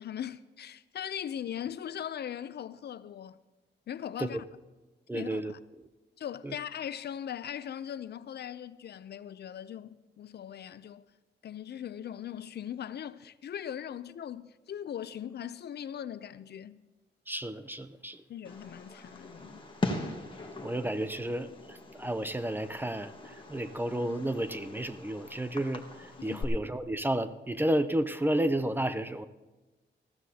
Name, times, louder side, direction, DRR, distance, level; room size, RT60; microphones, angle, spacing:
voice 1, 0.0-3.4 3.9-4.4 5.1-5.6 6.2-11.1 11.4-16.8 18.3-19.7 26.2-26.5, left 9 dB, 65° left, 0.5 m, -40 dB
voice 2, 5.1-5.5 6.4-6.5 17.3-18.2 20.6-29.2, right 1 dB, 10° right, 0.5 m, -32 dB
Fireworks, 18.4-26.4, left 2 dB, 25° left, 1.4 m, -40 dB
19.5 x 14.5 x 2.8 m
wide cardioid pair, 130°, 18 cm